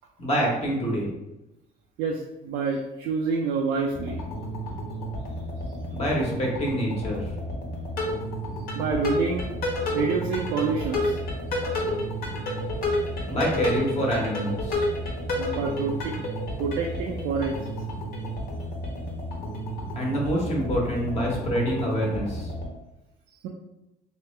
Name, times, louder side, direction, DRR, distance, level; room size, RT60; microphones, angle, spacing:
voice 1, 0.2-1.1 5.9-7.3 13.3-14.9 19.9-22.5, equal, 40° left, -3 dB, 1.2 m, -26 dB
voice 2, 2.0-4.2 8.7-9.5 9.9-11.2 15.4-16.2 16.6-17.6 23.4-23.5, right 5 dB, 85° right, 0 dB, 0.5 m, -27 dB
sound 1, 3.9-22.6, left 1 dB, 60° left, 1.2 m, -31 dB
3.1 x 3.0 x 3.3 m, 0.95 s
cardioid pair, 110°, 17 cm